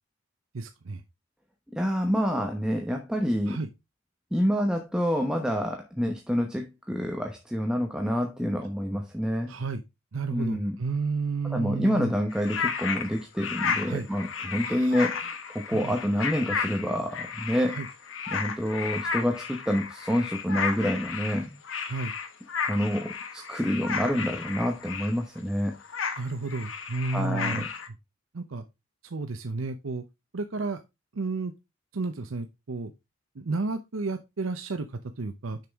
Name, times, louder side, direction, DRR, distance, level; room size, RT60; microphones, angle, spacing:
voice 1, 0.5-1.0 3.5-3.7 9.5-9.8 10.1-12.1 13.9-14.1 14.6-15.0 15.7-15.9 17.7-17.9 21.8-22.1 26.2-27.7 28.3-28.6 29.1-30.0 30.3-30.8 31.1-31.5 31.9-32.9 33.4-35.7, right 3 dB, 80° right, 0.7 m, -32 dB
voice 2, 1.7-3.6 4.3-9.5 10.3-10.8 11.5-17.8 18.3-21.5 22.7-25.7 27.1-27.7, equal, 5° right, 0.9 m, -27 dB
sound 1, 12.3-25.4 25.8-27.9, left 6 dB, 70° left, 1.1 m, -33 dB
6.6 x 6.1 x 3.5 m
head